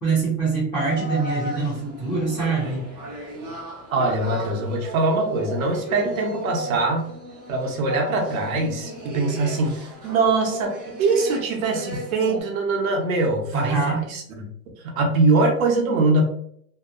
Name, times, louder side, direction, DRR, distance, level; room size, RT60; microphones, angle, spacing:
voice 1, 0.0-2.9 13.5-14.1, right 4 dB, 10° left, -12 dB, 0.7 m, -24 dB
After Sumo Players, 0.8-12.4, equal, 25° right, 0.5 m, -35 dB
voice 2, 3.9-7.1 7.5-14.5 14.8-16.2, right 3 dB, 55° right, 1 dB, 0.8 m, -23 dB
2.7 x 2.0 x 2.4 m, 0.65 s
supercardioid pair, 170°, 50 cm